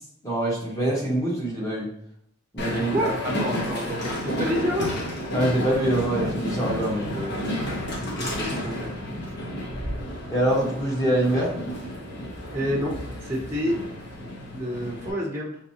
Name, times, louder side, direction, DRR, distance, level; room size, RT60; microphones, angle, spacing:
voice 1, 0.2-1.9 2.5-3.0 5.3-7.3 10.3-11.5, right 1 dB, 15° left, -5 dB, 1.3 m, -24 dB
Train, 2.6-15.1, equal, 60° left, 1.1 m, -31 dB
voice 2, 2.7-4.9 8.0-8.9 12.5-13.8 14.2-15.6, equal, 15° right, -3 dB, 0.7 m, -29 dB
5.1 x 3.2 x 2.8 m, 0.72 s
head